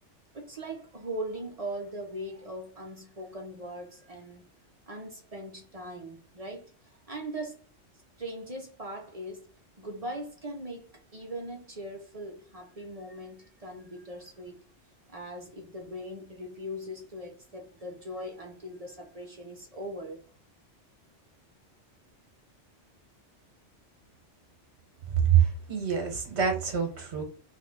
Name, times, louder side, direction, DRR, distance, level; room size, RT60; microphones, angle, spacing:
voice 1, 0.3-4.4 4.9-6.7 7.1-7.6 8.2-9.5 9.8-14.6 15.1-20.2, right 1 dB, 35° right, 0.8 m, -40 dB
voice 2, 25.3-27.2, right 8 dB, 65° right, 1.4 m, -25 dB
3.5 x 2.4 x 3.5 m
omnidirectional pair, 1.2 m